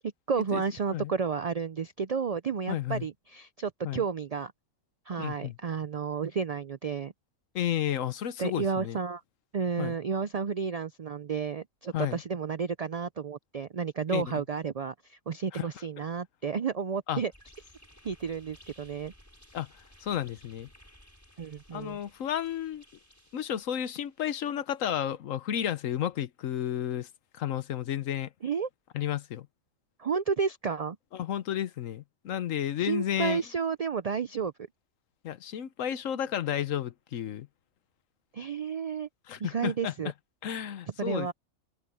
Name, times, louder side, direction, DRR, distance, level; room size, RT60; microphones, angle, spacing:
voice 1, 0.3-4.5 5.1-7.1 8.4-9.2 9.5-17.3 18.0-19.1 21.4-22.0 28.4-28.7 30.0-31.0 32.8-34.5 38.3-39.1 39.4-40.1 41.0-41.3, right 6 dB, 80° right, 0.3 m, -31 dB
voice 2, 2.7-3.1 3.8-4.0 5.2-5.6 7.5-9.0 9.8-10.0 11.9-12.2 14.1-14.4 15.5-15.7 17.1-17.2 19.5-20.7 21.7-22.8 23.3-28.3 28.9-29.5 31.1-33.4 35.2-37.5 39.3-40.1 40.4-41.3, left 10 dB, 80° left, 1.2 m, -32 dB
sound 1, 17.3-24.4, equal, 10° left, 5.5 m, -58 dB
omnidirectional pair, 1.3 m